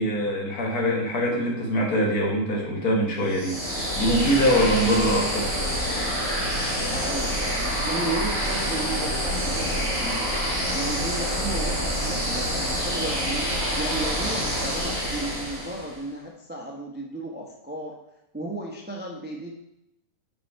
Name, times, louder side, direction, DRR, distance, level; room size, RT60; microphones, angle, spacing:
voice 1, 0.0-5.5, equal, 65° left, -1 dB, 1.8 m, -23 dB
sound 1, 3.3-16.0, equal, 20° left, 2.4 m, -27 dB
voice 2, 6.9-10.2 10.7-17.9 18.3-19.5, right 2 dB, 15° right, -1 dB, 0.4 m, -34 dB
5.4 x 5.2 x 4.6 m, 0.84 s
omnidirectional pair, 1.7 m